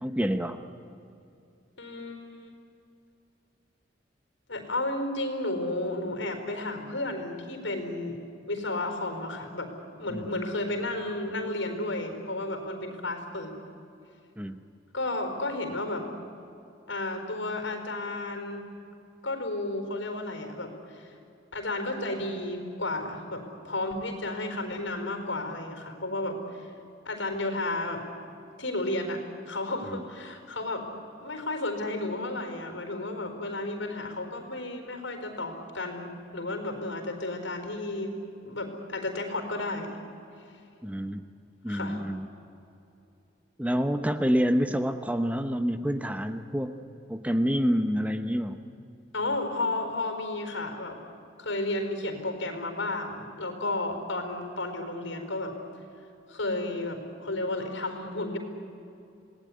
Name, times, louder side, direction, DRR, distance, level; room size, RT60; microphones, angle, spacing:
voice 1, 0.0-0.6 10.1-10.3 14.4-14.6 29.9-30.0 40.8-41.2 41.6-42.3 43.6-46.8 47.1-48.6, equal, 5° right, 8 dB, 0.9 m, -27 dB
voice 2, 1.8-2.5 4.5-8.2 8.5-9.7 10.0-13.5 14.9-16.1 16.9-18.7 19.2-21.1 21.5-26.7 27.0-28.0 28.6-29.2 29.5-30.8 31.2-38.2 38.4-40.0 41.7-42.0 49.1-51.0 51.4-55.5 56.3-58.4, left 2 dB, 80° left, 6 dB, 4.4 m, -32 dB
27.0 x 19.0 x 9.8 m, 2.7 s
head